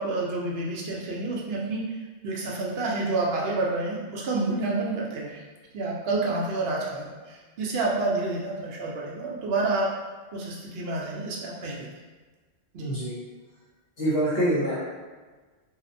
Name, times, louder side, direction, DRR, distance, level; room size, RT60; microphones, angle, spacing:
voice 1, 0.0-2.0 2.2-5.4 5.7-9.9 10.3-11.9 12.7-12.9, right 2 dB, 65° right, -3 dB, 0.8 m, -29 dB
voice 2, 12.8-13.2 14.0-14.8, right 1 dB, 60° left, -10 dB, 1.0 m, -25 dB
2.7 x 2.1 x 2.5 m, 1.3 s
omnidirectional pair, 1.2 m